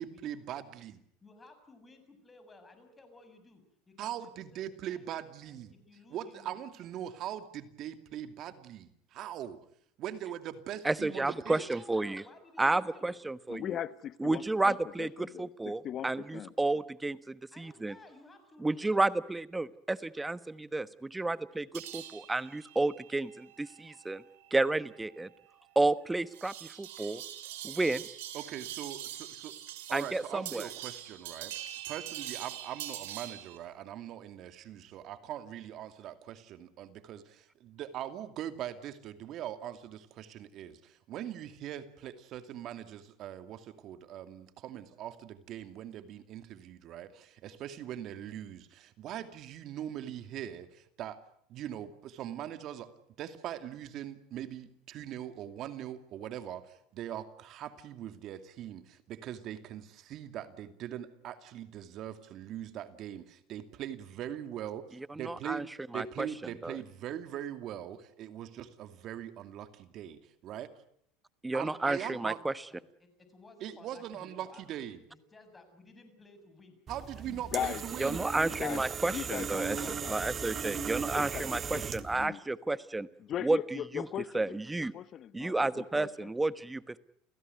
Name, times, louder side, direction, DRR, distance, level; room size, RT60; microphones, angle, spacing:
voice 1, 0.0-1.0 4.0-5.7 6.1-9.6 10.0-11.6 28.3-29.5 29.9-31.5 31.9-51.2 51.5-52.9 53.2-65.6 65.9-70.7 71.5-72.4 73.6-75.0 76.9-78.3, right 11 dB, 50° right, 10 dB, 2.5 m, -41 dB
voice 2, 1.2-6.6 11.1-13.1 17.5-18.9 72.7-76.8 77.1-77.2 77.6-77.7, left 2 dB, 15° left, 8 dB, 7.0 m, -57 dB
voice 3, 10.8-12.2 12.6-13.6 14.2-17.9 18.6-24.2 24.5-25.3 25.7-27.2 27.6-28.0 29.9-30.7 65.2-65.6 65.9-66.3 66.6-66.8 71.4-72.5 78.0-83.1 83.4-83.6 83.9-84.1 84.3-84.9 85.3-87.0, right 2 dB, 10° right, 15 dB, 1.2 m, -31 dB
voice 4, 13.5-16.5 77.3-77.8 78.5-82.4 83.2-84.6 84.9-86.3, left 10 dB, 45° left, 16 dB, 1.1 m, -39 dB
sound 1, 21.7-33.6, right 12 dB, 85° right, 3.9 m, -44 dB
sound 2, 76.9-82.3, right 7 dB, 30° right, 1.6 m, -37 dB
29.5 x 16.0 x 9.5 m, 0.69 s
supercardioid pair, 105°, 0 cm